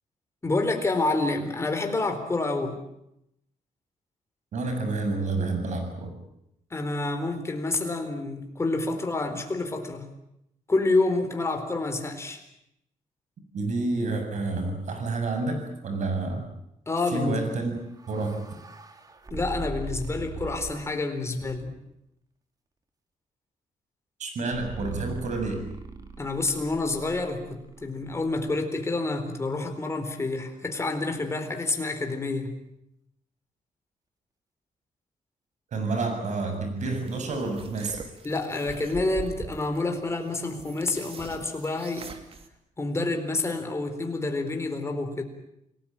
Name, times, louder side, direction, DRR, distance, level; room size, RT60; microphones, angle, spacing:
voice 1, 0.4-2.8 6.7-10.1 10.7-12.4 16.9-17.4 19.3-21.7 26.2-32.6 38.2-42.1 42.8-45.2, left 2 dB, 20° left, 5 dB, 4.2 m, -28 dB
voice 2, 4.5-6.1 13.5-16.4 17.1-17.7 18.1-18.4 24.2-25.7 35.7-38.0, right 3 dB, 60° right, 6 dB, 7.2 m, -29 dB
sound 1, 17.6-20.9 21.4-21.9 24.5-28.6, right 3 dB, 25° right, 2.3 m, -40 dB
sound 2, 36.9-42.5, right 4 dB, 45° right, 2.8 m, -43 dB
29.0 x 19.5 x 9.0 m, 0.80 s
wide cardioid pair, 145°, 14 cm